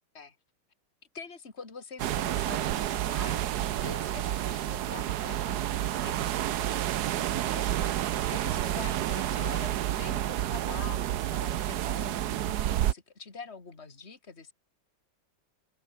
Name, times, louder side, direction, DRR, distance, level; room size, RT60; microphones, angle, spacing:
voice 1, 1.1-6.8 7.1-14.5, left 4 dB, 30° left, 3.2 m, -45 dB
sound 1, 2.0-12.9, right 12 dB, 65° right, 1.1 m, -30 dB
omnidirectional pair, 2.3 m